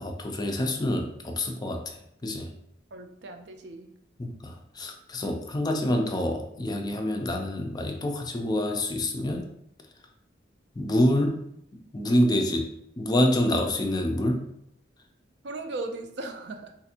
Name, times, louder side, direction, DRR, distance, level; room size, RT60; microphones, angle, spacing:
voice 1, 0.0-2.5 4.2-9.5 10.8-11.4 11.7-14.4, left 1 dB, 25° left, 4 dB, 0.4 m, -27 dB
voice 2, 2.9-3.9 15.4-16.7, right 2 dB, 65° right, 5 dB, 0.4 m, -37 dB
4.0 x 2.5 x 2.8 m, 0.74 s
head